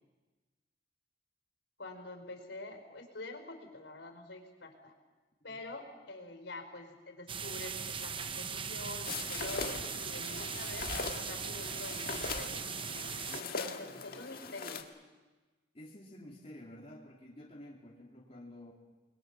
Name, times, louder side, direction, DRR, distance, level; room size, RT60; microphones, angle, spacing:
voice 1, 1.8-4.9 5.4-12.7 13.4-14.9, left 2 dB, 80° left, 5 dB, 4.8 m, -46 dB
sound 1, 7.3-13.4, right 6 dB, 30° right, 0.8 m, -39 dB
sound 2, 9.0-14.8, left 4 dB, 55° left, 1.7 m, -41 dB
voice 2, 13.3-14.0 15.7-18.7, left 1 dB, 35° left, -3 dB, 3.1 m, -51 dB
29.5 x 22.0 x 6.1 m, 1.3 s
head